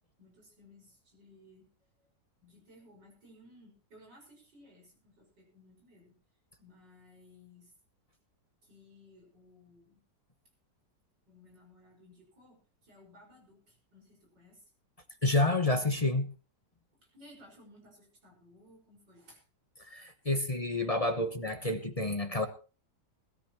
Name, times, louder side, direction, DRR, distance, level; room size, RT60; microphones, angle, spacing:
voice 1, 0.2-1.7 2.0-2.1 2.4-6.2 6.6-7.7 8.6-10.0 11.3-14.6 16.9-19.4, left 1 dB, 75° right, 0 dB, 6.4 m, -58 dB
voice 2, 15.2-16.3 19.8-22.5, left 2 dB, 25° left, 7 dB, 0.9 m, -29 dB
20.5 x 13.5 x 3.1 m, 0.34 s
omnidirectional pair, 1.9 m